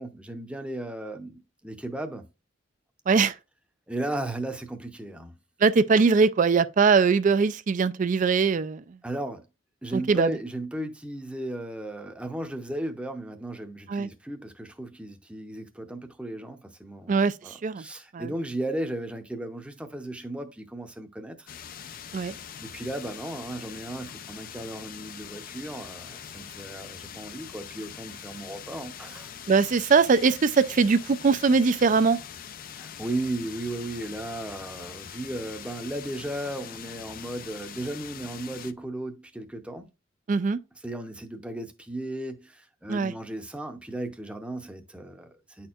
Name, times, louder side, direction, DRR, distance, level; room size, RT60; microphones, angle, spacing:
voice 1, 0.0-2.2 3.9-5.4 9.0-9.4 9.8-22.1 22.6-29.3 32.8-39.9 40.8-45.7, right 1 dB, 5° right, 0.7 m, -35 dB
voice 2, 5.6-9.0 9.9-10.3 13.9-14.1 17.1-17.8 18.1-18.3 22.1-22.3 29.5-32.2 40.3-40.6 42.9-43.1, right 5 dB, 40° right, 0.4 m, -21 dB
sound 1, 21.5-38.7, left 8 dB, 45° left, 0.4 m, -43 dB
9.8 x 4.3 x 2.4 m
head